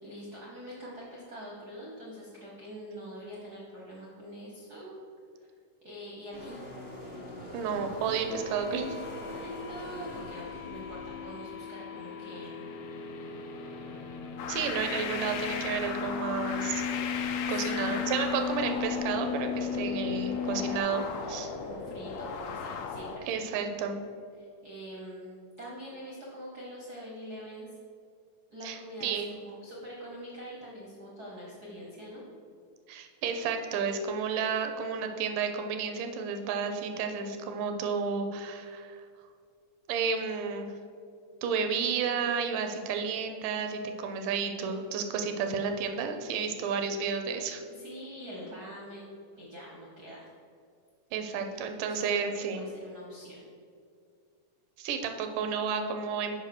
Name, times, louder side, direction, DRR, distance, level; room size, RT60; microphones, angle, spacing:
voice 1, 0.0-4.9 5.4-5.5 5.8-6.6 9.3-12.6 17.5-18.0 21.5-23.4 24.4-27.7 28.5-32.2 47.7-50.2 51.8-53.5, equal, 70° right, -4 dB, 0.9 m, -44 dB
sound 1, 6.3-11.4, left 1 dB, 45° left, 0.6 m, -43 dB
voice 2, 7.5-9.0 14.5-16.8 17.5-21.5 23.3-24.0 28.6-29.3 32.9-39.0 39.9-40.7 41.4-47.6 51.1-52.6 54.8-56.4, right 6 dB, 90° right, 6 dB, 2.3 m, -31 dB
sound 2, 8.3-20.8, left 6 dB, 70° left, 1.6 m, -37 dB
sound 3, 14.4-23.2, left 6 dB, 90° left, 2.3 m, -37 dB
6.4 x 5.4 x 6.5 m, 2.3 s
omnidirectional pair, 3.7 m